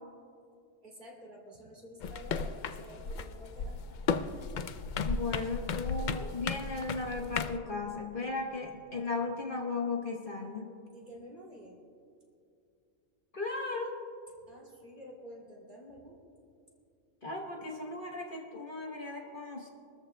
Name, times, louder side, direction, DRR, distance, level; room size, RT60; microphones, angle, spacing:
voice 1, 0.8-3.8 10.9-11.8 14.4-16.2, equal, 40° right, -3 dB, 2.8 m, -50 dB
sound 1, 2.0-7.6, left 5 dB, 65° left, 0.4 m, -35 dB
voice 2, 5.0-10.7 13.3-14.0 17.2-19.7, left 3 dB, 45° left, 0 dB, 1.2 m, -36 dB
24.0 x 13.5 x 2.2 m, 2.4 s
omnidirectional pair, 1.3 m